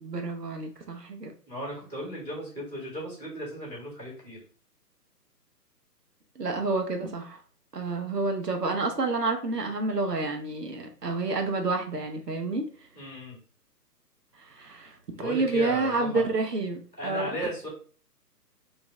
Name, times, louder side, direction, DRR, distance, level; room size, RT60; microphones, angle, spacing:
voice 1, 0.0-1.3 6.4-7.4 7.7-12.6 14.5-17.4, right 3 dB, 70° right, 4 dB, 1.0 m, -29 dB
voice 2, 1.4-4.4 12.9-13.4 15.1-16.3 17.0-17.7, equal, 5° right, -17 dB, 0.7 m, -36 dB
3.0 x 2.8 x 3.4 m, 0.41 s
figure-of-eight pair, 140°, 49 cm